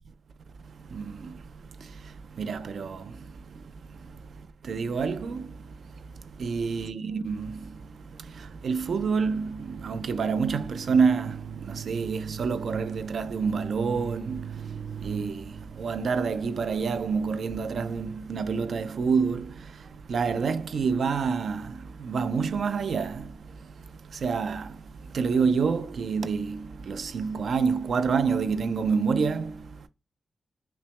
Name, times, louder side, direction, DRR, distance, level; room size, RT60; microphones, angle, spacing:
voice 1, 0.7-29.9, right 5 dB, 65° right, 0.3 m, -29 dB
5.7 x 2.1 x 3.1 m
wide cardioid pair, 170°, 0 cm